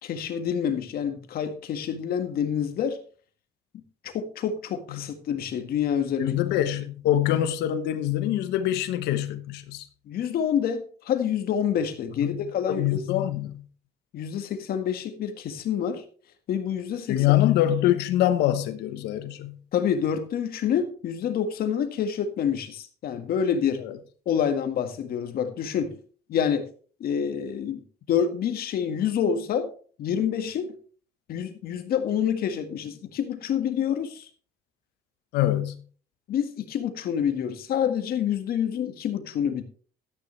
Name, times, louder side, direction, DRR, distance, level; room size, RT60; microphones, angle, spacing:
voice 1, 0.0-3.0 4.0-6.4 10.1-13.0 14.1-16.0 16.5-17.2 19.7-23.8 24.3-26.0 26.3-26.7 27.0-29.7 30.0-30.7 31.3-34.3 36.3-39.6, left 8 dB, 65° left, 1.8 m, -27 dB
voice 2, 6.2-9.9 12.2-12.4 12.7-13.6 17.1-19.6 23.8-23.9 35.3-35.8, left 12 dB, 90° left, 1.1 m, -24 dB
12.5 x 10.0 x 3.3 m
cardioid pair, 110°, 17 cm